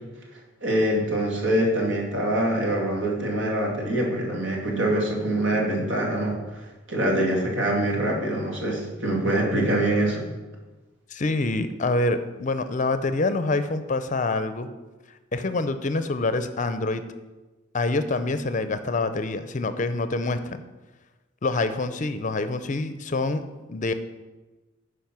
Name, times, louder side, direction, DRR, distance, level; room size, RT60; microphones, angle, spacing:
voice 1, 0.6-6.3 6.9-10.2, right 1 dB, 70° right, -1 dB, 2.3 m, -24 dB
voice 2, 11.1-14.7 15.3-17.0 17.7-20.6 21.4-23.4 23.7-23.9, left 2 dB, 40° left, 10 dB, 0.5 m, -26 dB
10.5 x 4.9 x 6.0 m, 1.2 s
head